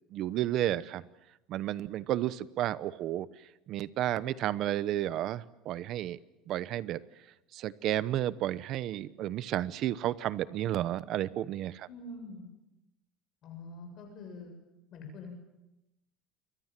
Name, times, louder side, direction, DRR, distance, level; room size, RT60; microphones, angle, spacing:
voice 1, 0.1-1.0 1.5-3.3 3.7-6.2 6.5-7.0 7.5-11.9, right 13 dB, 45° right, 17 dB, 0.9 m, -32 dB
voice 2, 11.9-12.5 13.4-14.5 14.9-15.3, left 2 dB, 40° left, 4 dB, 7.6 m, -45 dB
28.0 x 23.5 x 7.6 m, 0.95 s
cardioid pair, 160°, 0 cm